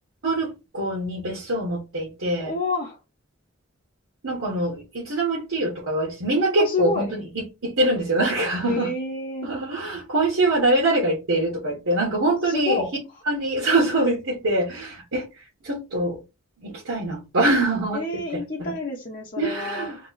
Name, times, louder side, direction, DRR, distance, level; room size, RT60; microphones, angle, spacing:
voice 1, 0.2-2.5 4.2-8.9 9.4-12.8 13.3-15.3 15.6-16.2 16.6-18.2 19.4-20.0, right 2 dB, 85° right, 1.1 m, -24 dB
voice 2, 2.4-3.0 6.6-7.1 8.6-9.5 12.4-12.9 17.9-20.0, left 3 dB, 45° left, 0.9 m, -28 dB
3.0 x 2.4 x 3.8 m
head